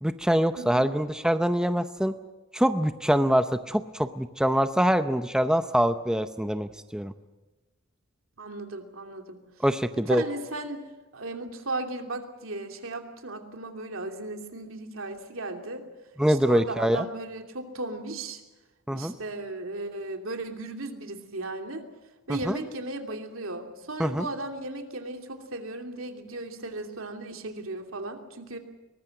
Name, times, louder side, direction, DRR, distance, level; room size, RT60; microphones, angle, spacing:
voice 1, 0.0-2.2 2.5-7.1 9.6-10.2 16.2-17.0 18.9-19.1 22.5-22.6 24.0-24.3, equal, 5° right, 9 dB, 0.6 m, -24 dB
voice 2, 0.6-0.9 8.4-9.4 10.1-10.8 11.1-15.8 16.3-18.4 18.9-21.9 22.3-28.6, right 2 dB, 75° right, 5 dB, 2.9 m, -36 dB
22.5 x 20.0 x 7.8 m, 1.2 s
head